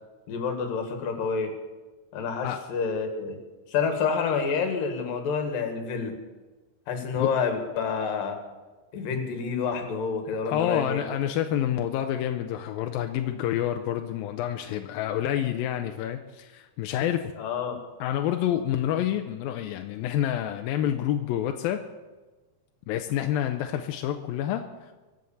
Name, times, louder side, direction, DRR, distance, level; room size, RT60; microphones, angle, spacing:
voice 1, 0.3-1.5 2.1-3.4 3.7-6.1 6.9-8.4 8.9-11.0 17.4-17.8, left 5 dB, 75° left, 5 dB, 3.5 m, -28 dB
voice 2, 10.5-17.3 18.0-21.8 22.9-24.9, left 11 dB, 90° left, 6 dB, 2.5 m, -28 dB
24.0 x 8.1 x 7.1 m, 1.2 s
omnidirectional pair, 4.1 m